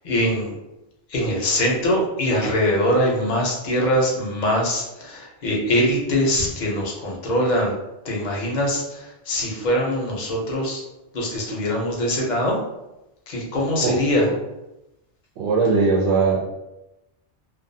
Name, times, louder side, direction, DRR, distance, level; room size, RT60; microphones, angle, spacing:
voice 1, 0.0-0.5 1.1-7.7 8.0-10.8 11.1-12.6 13.3-14.3, equal, 50° left, -2 dB, 0.7 m, -22 dB
voice 2, 15.4-16.4, right 4 dB, 85° right, -3 dB, 0.9 m, -19 dB
2.3 x 2.3 x 2.6 m, 0.93 s
omnidirectional pair, 1.1 m